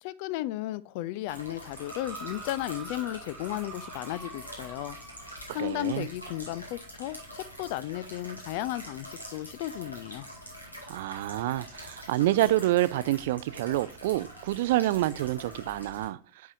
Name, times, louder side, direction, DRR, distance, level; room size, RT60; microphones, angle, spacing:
voice 1, 0.0-10.3, left 15 dB, 45° left, 0.4 m, -35 dB
sound 1, 1.3-16.1, equal, 85° left, 1.9 m, -45 dB
sound 2, 1.7-5.4 6.2-6.3, right 3 dB, 5° right, 1.6 m, -45 dB
voice 2, 5.5-6.1 10.9-16.2, right 15 dB, 50° right, 0.4 m, -27 dB
9.3 x 4.7 x 2.6 m
figure-of-eight pair, 90°, 0 cm